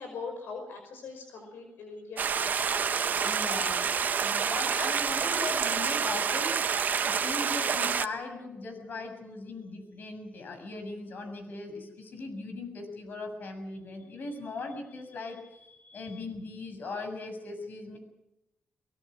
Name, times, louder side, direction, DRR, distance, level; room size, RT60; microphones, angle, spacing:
voice 1, 0.0-2.8, left 4 dB, 80° left, 5 dB, 5.5 m, -41 dB
Stream, 2.2-8.1, right 6 dB, 55° right, 1.0 m, -28 dB
voice 2, 3.1-3.9 4.2-18.0, left 3 dB, 60° left, 5 dB, 7.0 m, -39 dB
23.5 x 22.5 x 6.3 m, 0.91 s
cardioid pair, 85°, 4 cm